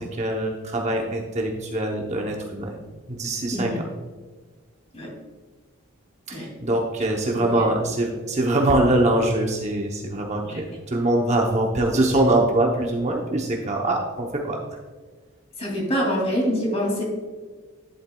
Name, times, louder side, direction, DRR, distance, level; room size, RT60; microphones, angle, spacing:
voice 1, 0.0-2.8 3.1-3.7 6.3-14.6, right 1 dB, 30° right, 1 dB, 0.8 m, -23 dB
voice 2, 3.5-3.8 4.9-5.1 6.3-6.5 7.4-7.7 10.4-10.6 15.6-17.0, equal, 30° left, -2 dB, 2.5 m, -25 dB
11.0 x 7.7 x 2.3 m, 1.4 s
head